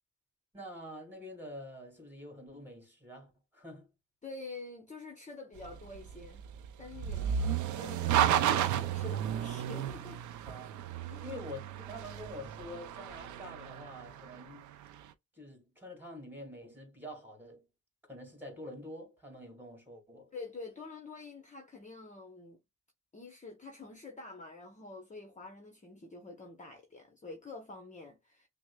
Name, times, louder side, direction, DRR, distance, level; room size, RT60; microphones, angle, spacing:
voice 1, 0.5-3.9 7.2-7.7 10.5-14.7 15.3-17.7 18.1-20.3, left 1 dB, 5° right, 2.3 m, -47 dB
voice 2, 4.2-6.5 6.8-10.2 11.1-11.4 20.3-22.6 23.1-28.5, left 3 dB, 25° left, 0.8 m, -47 dB
sound 1, 5.6-14.8, right 10 dB, 75° right, 0.5 m, -33 dB
6.0 x 2.1 x 2.2 m
cardioid pair, 90°, 30 cm